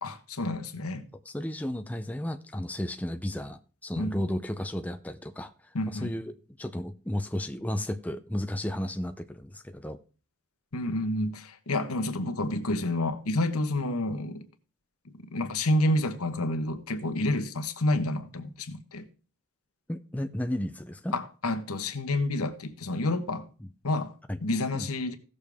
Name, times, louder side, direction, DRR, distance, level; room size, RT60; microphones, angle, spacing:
voice 1, 0.0-1.1 4.0-4.2 5.7-6.1 10.7-14.5 15.0-19.1 21.1-23.5 23.8-24.1 24.4-25.1, left 1 dB, 90° left, 1.2 m, -29 dB
voice 2, 1.3-5.5 5.9-10.0 19.9-21.2 24.3-24.4 24.7-24.9, left 1 dB, 5° left, 0.5 m, -33 dB
16.5 x 6.6 x 3.5 m
head